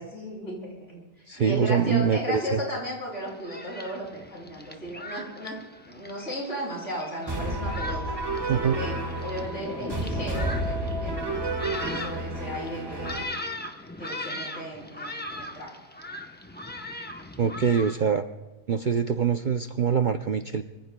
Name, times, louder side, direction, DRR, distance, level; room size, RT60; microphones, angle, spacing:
voice 1, 0.0-5.6 5.9-8.1 8.5-11.2 11.8-13.1 14.0-15.8, equal, 50° left, -5 dB, 7.2 m, -35 dB
voice 2, 1.3-2.6 8.5-8.8 17.4-18.2 18.7-20.6, right 7 dB, 85° right, 7 dB, 0.4 m, -24 dB
Thunderstorm, 3.1-17.9, left 1 dB, 10° left, 0.6 m, -39 dB
sound 1, 7.3-13.2, right 2 dB, 15° right, 1.4 m, -31 dB
25.0 x 24.5 x 2.2 m, 1.2 s
omnidirectional pair, 1.6 m